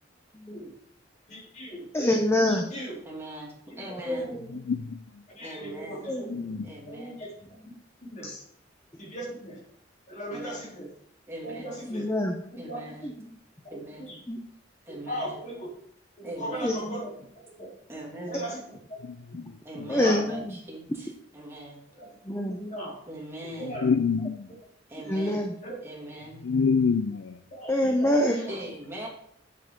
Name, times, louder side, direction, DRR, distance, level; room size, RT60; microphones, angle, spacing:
voice 1, 1.3-1.9 2.5-3.0 3.7-4.4 5.4-6.2 6.9-7.3 8.1-8.4 9.0-9.6 10.1-10.9 11.4-12.1 12.5-12.8 14.0-14.2 14.9-15.7 16.2-17.1 17.6-17.7 18.2-18.6 18.9-19.0 20.0-20.2 22.0-22.1 22.6-23.0 23.6-23.9 25.6-25.7 27.5-28.5, equal, 40° left, -3 dB, 3.4 m, -37 dB
voice 2, 1.9-2.7 4.3-4.5 6.1-6.7 7.6-7.7 8.2-8.3 11.9-12.4 13.0-13.3 14.3-14.4 16.6-17.0 19.9-20.6 22.2-22.7 24.2-24.3 25.1-25.5 27.7-28.5, left 1 dB, 15° left, 3 dB, 0.8 m, -26 dB
voice 3, 3.0-4.3 5.4-6.1 6.6-7.2 10.3-10.7 11.3-11.7 12.6-13.1 13.7-14.1 14.9-15.3 16.2-16.7 17.9-18.4 19.6-21.8 23.1-23.8 24.9-25.4 25.8-26.4 28.5-29.1, right 1 dB, 15° right, -4 dB, 2.4 m, -41 dB
voice 4, 6.3-6.7 19.1-19.5 23.6-24.5 26.4-27.3, left 5 dB, 75° left, 12 dB, 0.5 m, -26 dB
8.3 x 7.5 x 3.8 m, 0.66 s
head